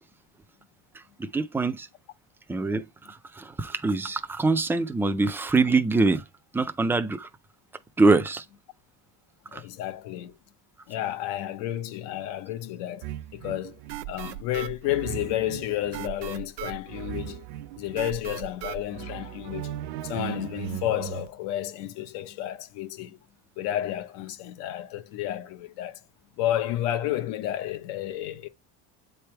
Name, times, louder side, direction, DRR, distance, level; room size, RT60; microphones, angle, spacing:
voice 1, 1.2-1.9 2.5-6.2 6.5-7.3 8.0-8.5 9.5-9.6, right 3 dB, 5° right, 0.3 m, -24 dB
voice 2, 9.5-10.3 10.9-13.1 13.3-13.8 14.1-17.4 17.8-19.7 20.0-23.2 23.6-26.0 26.4-28.5, left 13 dB, 85° left, 1.1 m, -31 dB
sound 1, 13.0-21.3, right 13 dB, 75° right, 0.7 m, -37 dB
8.6 x 3.4 x 4.4 m
cardioid pair, 155°, 41 cm